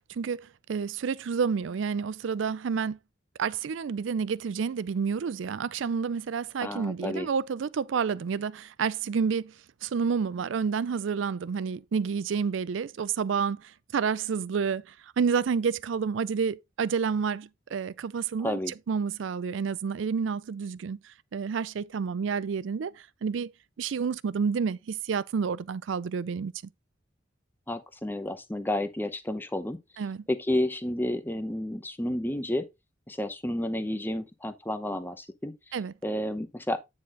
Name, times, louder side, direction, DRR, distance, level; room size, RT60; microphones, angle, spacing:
voice 1, 0.1-3.0 3.4-9.5 9.8-13.6 13.9-14.8 15.2-18.6 18.9-21.0 21.3-22.9 23.2-23.5 23.8-26.5 30.0-30.2 35.7-35.9, right 6 dB, 70° right, 0.4 m, -29 dB
voice 2, 6.6-7.3 18.4-18.7 27.7-29.8 30.3-32.7 33.1-35.5 36.0-36.8, left 1 dB, 10° left, 0.8 m, -31 dB
9.4 x 4.3 x 3.7 m
head